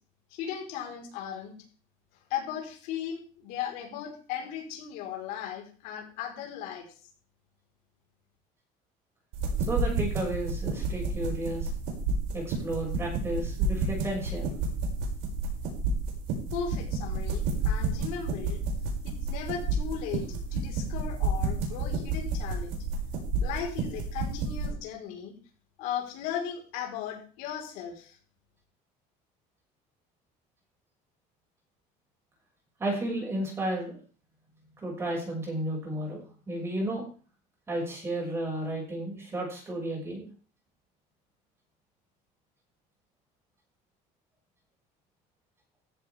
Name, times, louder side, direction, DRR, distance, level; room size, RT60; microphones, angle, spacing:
voice 1, 0.3-1.5 2.3-6.8 16.5-18.6 19.0-22.8 23.4-25.3 25.8-28.2, left 8 dB, 75° left, 1 dB, 4.8 m, -37 dB
sound 1, 9.3-24.7, right 3 dB, 80° right, 6.7 m, -30 dB
voice 2, 9.7-11.7 12.3-14.4 32.8-34.0 34.8-37.0 37.7-40.3, right 1 dB, 15° right, -1 dB, 6.6 m, -33 dB
15.5 x 14.5 x 3.7 m, 0.40 s
cardioid pair, 170°, 15 cm